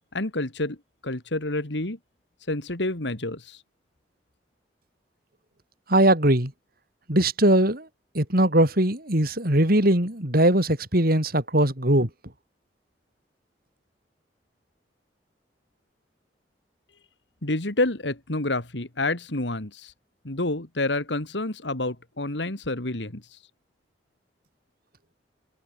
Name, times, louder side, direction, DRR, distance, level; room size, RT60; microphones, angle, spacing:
voice 1, 0.1-0.8 1.0-2.0 2.5-3.6 17.4-19.9 20.2-23.4, left 2 dB, 75° left, 2.6 m, -28 dB
voice 2, 5.9-6.5 7.1-7.9 8.1-12.1, right 1 dB, 55° right, 5.5 m, -20 dB
head